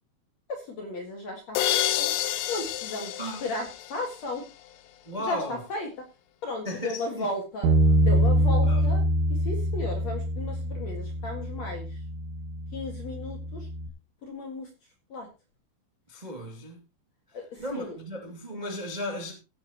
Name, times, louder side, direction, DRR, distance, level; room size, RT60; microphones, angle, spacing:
voice 1, 0.5-2.1 2.5-4.5 5.2-6.1 6.4-7.7 8.0-9.0 9.3-12.0 12.7-13.7 14.2-14.7 15.1-15.3 17.3-18.0, left 2 dB, 50° left, 2.2 m, -35 dB
sound 1, 1.5-4.4, left 12 dB, 75° left, 2.9 m, -29 dB
voice 2, 5.0-5.6 6.6-7.3 8.7-8.8 16.1-16.8 17.6-19.3, equal, 30° right, 0.8 m, -35 dB
Bass guitar, 7.6-13.9, right 1 dB, 85° right, 4.0 m, -25 dB
16.0 x 10.5 x 3.0 m
omnidirectional pair, 5.5 m